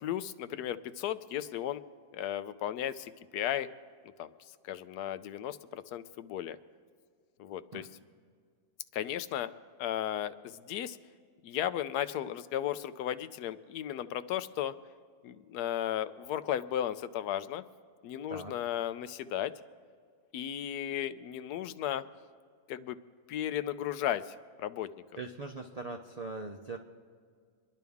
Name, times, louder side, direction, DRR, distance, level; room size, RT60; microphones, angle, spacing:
voice 1, 0.0-1.8 2.1-3.7 4.2-4.3 4.6-6.6 7.4-7.9 8.9-9.5 9.8-11.0 11.4-14.7 15.2-17.6 18.0-19.5 20.3-22.0 22.7-23.0 23.3-24.9, left 11 dB, 80° left, 13 dB, 1.1 m, -35 dB
voice 2, 25.2-26.8, right 3 dB, 55° right, 2 dB, 0.4 m, -41 dB
27.0 x 11.0 x 3.5 m, 2.1 s
omnidirectional pair, 1.7 m